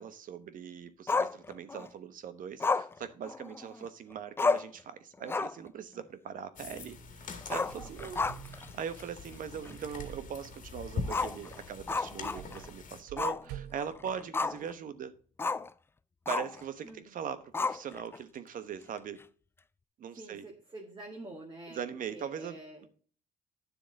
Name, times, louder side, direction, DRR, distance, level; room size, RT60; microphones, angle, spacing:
voice 1, 0.0-8.2 8.5-15.1 16.3-19.2 20.0-20.4 21.7-22.9, right 8 dB, 55° right, 1.1 m, -41 dB
Growling, 1.1-1.9 2.6-3.9 4.1-4.2 4.4-4.8 5.2-5.7 6.0-6.1 7.4-8.7 9.0-9.1 9.7-9.8 11.1-12.7 13.2-13.4 13.8-14.7 15.4-15.7 16.3-16.6 17.5-18.2, left 4 dB, 15° left, 0.3 m, -32 dB
sound 1, 6.6-13.0, left 4 dB, 50° left, 1.9 m, -43 dB
sound 2, 7.7-14.6, right 11 dB, 85° right, 0.7 m, -50 dB
voice 2, 16.8-17.2 20.2-21.8 22.1-22.9, right 2 dB, 25° right, 2.0 m, -47 dB
9.9 x 7.1 x 4.0 m
cardioid pair, 110°, 17 cm